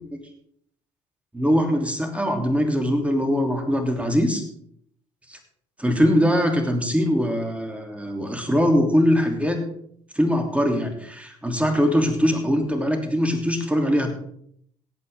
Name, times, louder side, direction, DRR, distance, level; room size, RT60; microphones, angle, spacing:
voice 1, 1.3-4.4 5.3-5.4 5.8-9.6 10.1-14.1, equal, 10° right, 4 dB, 3.1 m, -22 dB
18.0 x 8.4 x 3.7 m, 0.66 s
hypercardioid pair, 55°, 16 cm